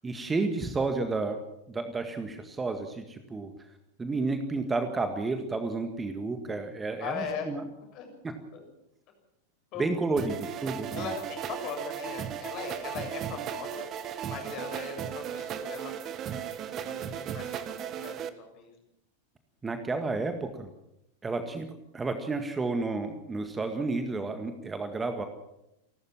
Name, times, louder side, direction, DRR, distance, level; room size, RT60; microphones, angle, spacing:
voice 1, 0.0-1.4 1.7-3.5 4.0-7.7 8.2-8.3 9.8-11.1 19.6-20.7 21.2-21.7 21.9-25.2, right 3 dB, 15° right, 7 dB, 1.9 m, -31 dB
voice 2, 7.0-7.5 7.9-8.1 8.5-8.7 9.7-10.0 10.9-15.9 16.7-18.7, left 6 dB, 40° left, 4 dB, 7.2 m, -39 dB
sound 1, 10.2-18.3, right 9 dB, 30° right, 1.5 m, -36 dB
29.0 x 13.0 x 7.5 m, 0.86 s
figure-of-eight pair, 90°, 0 cm